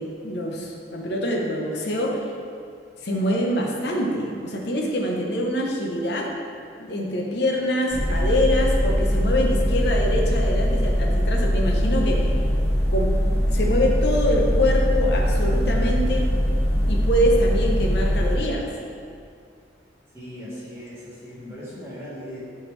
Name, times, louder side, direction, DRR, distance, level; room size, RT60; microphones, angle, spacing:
voice 1, 0.0-2.2 3.0-6.3 6.8-12.3 12.9-16.2 16.8-18.7, equal, 60° left, -1 dB, 0.8 m, -25 dB
sound 1, 7.9-18.4, equal, 15° left, 0.6 m, -21 dB
voice 2, 20.1-22.4, equal, 15° right, -9 dB, 1.5 m, -38 dB
8.8 x 3.7 x 3.3 m, 2.3 s
head